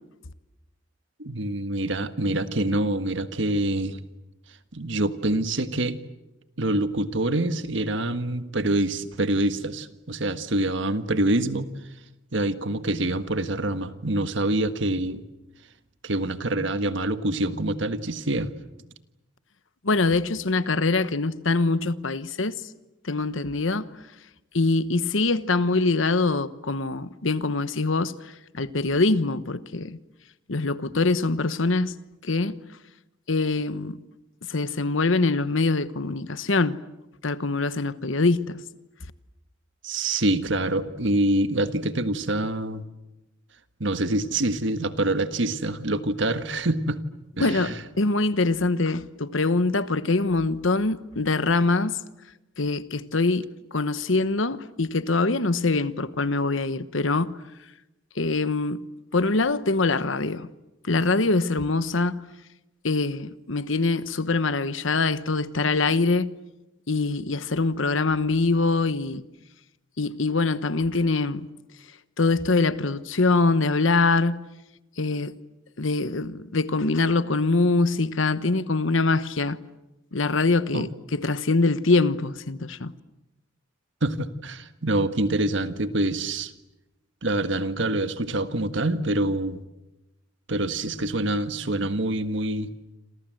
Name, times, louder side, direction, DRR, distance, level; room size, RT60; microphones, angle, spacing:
voice 1, 1.2-4.0 4.7-6.0 6.6-11.7 12.3-15.2 16.0-18.5 39.8-42.8 43.8-47.0 47.4-47.7 80.7-80.8 84.0-86.5 87.2-89.6 90.5-92.7, right 1 dB, 65° right, 1.6 m, -26 dB
voice 2, 19.8-22.6 23.0-24.0 24.5-30.0 30.5-32.0 32.2-32.6 33.3-34.0 34.5-36.8 37.2-38.6 47.4-52.0 52.6-57.4 58.1-58.8 59.1-60.5 60.8-62.2 62.8-66.3 66.9-69.2 70.0-71.5 72.2-74.4 75.0-75.3 75.8-79.6 80.1-82.9, left 3 dB, 75° left, 1.2 m, -24 dB
28.0 x 27.0 x 7.8 m
head